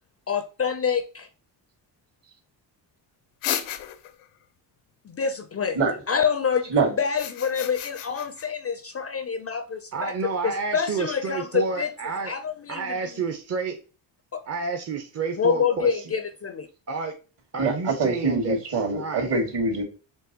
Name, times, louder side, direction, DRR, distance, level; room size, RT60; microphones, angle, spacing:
voice 1, 0.3-1.3 5.0-5.8 6.1-6.7 7.0-10.1 10.4-11.9 12.2-13.0 14.3-14.4 15.4-16.7, left 6 dB, 30° left, 0.4 m, -26 dB
sound 1, 3.4-4.3 7.0-8.5, left 11 dB, 85° left, 0.6 m, -32 dB
voice 2, 9.9-12.3 12.7-13.8 14.5-16.1 16.9-17.1 17.5-19.4, right 4 dB, 30° right, 0.7 m, -30 dB
voice 3, 17.6-19.8, right 3 dB, 55° right, 2.0 m, -24 dB
4.5 x 3.0 x 2.8 m
supercardioid pair, 65°, 49 cm